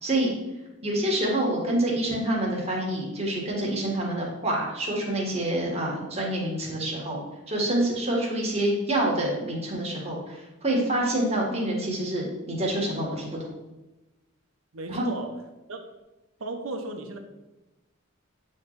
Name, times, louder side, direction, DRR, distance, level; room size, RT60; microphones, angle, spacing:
voice 1, 0.0-0.3 0.8-13.5 14.9-15.1, right 1 dB, 30° right, -3 dB, 1.6 m, -27 dB
voice 2, 14.7-15.4 15.7-15.8 16.4-17.2, right 2 dB, 80° right, 5 dB, 0.8 m, -35 dB
8.6 x 3.2 x 4.0 m, 1.0 s
head